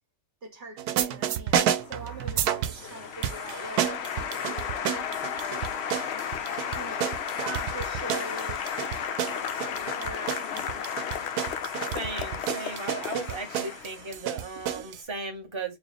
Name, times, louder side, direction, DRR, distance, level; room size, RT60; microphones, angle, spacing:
voice 1, 0.4-6.1 6.7-9.5 9.7-11.6, right 2 dB, 50° right, 1.7 m, -44 dB
sound 1, 0.8-2.9 3.2-15.0, right 10 dB, 90° right, 1.2 m, -31 dB
Applause, 1.8-14.2, left 8 dB, 65° left, 0.6 m, -34 dB
voice 2, 11.9-15.8, right 3 dB, 20° right, 1.1 m, -36 dB
4.7 x 2.4 x 3.2 m
omnidirectional pair, 1.6 m